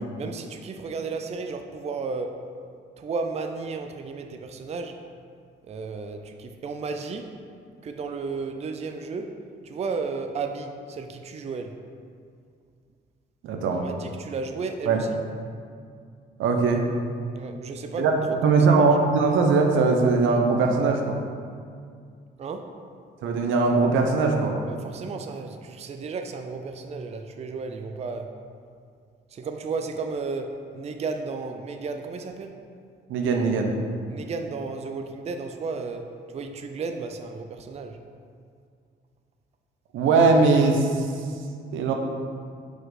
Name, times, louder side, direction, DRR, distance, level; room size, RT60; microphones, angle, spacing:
voice 1, 0.0-2.4 3.0-5.0 5.6-7.4 7.8-9.4 9.6-11.8 13.7-15.1 17.3-18.9 22.4-22.8 24.7-28.4 29.3-32.6 34.1-38.0, right 4 dB, 35° right, 5 dB, 0.4 m, -33 dB
voice 2, 13.4-13.8 14.9-15.0 16.4-16.8 18.0-18.1 18.4-21.2 23.2-24.6 33.1-33.8 39.9-41.1 41.7-41.9, right 4 dB, 85° right, 3 dB, 0.7 m, -20 dB
5.0 x 3.9 x 4.8 m, 2.2 s
cardioid pair, 90°, 20 cm